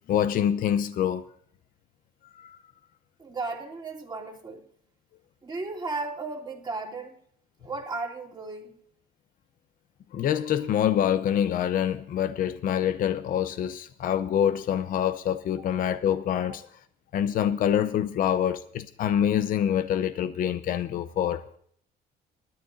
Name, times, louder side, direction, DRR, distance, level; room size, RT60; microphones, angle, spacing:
voice 1, 0.1-1.3 2.3-2.6 10.1-16.7 17.1-21.6, left 9 dB, 55° left, 0.7 m, -26 dB
voice 2, 3.2-4.6 5.4-7.2 7.6-8.8, right 3 dB, 25° right, 2.9 m, -35 dB
20.5 x 13.0 x 2.6 m
cardioid pair, 110°, 17 cm